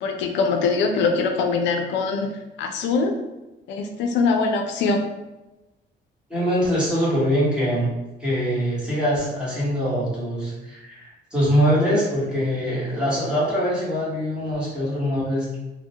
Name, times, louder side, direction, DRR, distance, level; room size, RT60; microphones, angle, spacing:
voice 1, 0.0-2.3 2.6-3.1 3.7-5.0, left 4 dB, 75° left, 4 dB, 0.4 m, -22 dB
voice 2, 6.3-7.9 8.2-15.6, equal, 5° right, -8 dB, 1.0 m, -23 dB
2.2 x 2.1 x 2.7 m, 1.0 s
cardioid pair, 135°, 19 cm